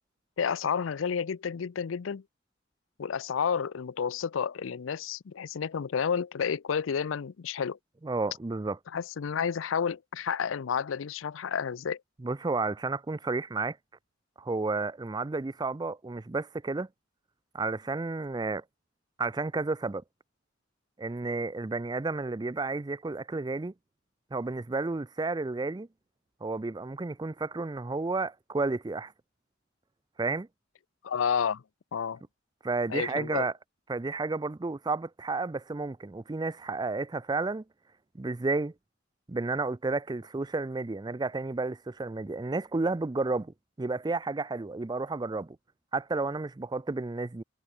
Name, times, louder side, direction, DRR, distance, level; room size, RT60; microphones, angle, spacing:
voice 1, 0.4-2.2 3.0-7.8 8.9-12.0 31.0-31.6 31.9-32.2 32.9-33.5, left 6 dB, 85° left, 0.5 m, -30 dB
voice 2, 8.0-8.8 12.2-13.8 14.4-16.9 17.5-18.6 19.2-20.0 21.0-23.7 24.3-25.9 26.4-29.1 30.2-30.5 32.6-33.5 33.9-37.6 38.1-38.7 39.3-45.6 45.9-47.4, right 3 dB, 20° right, 0.4 m, -31 dB
head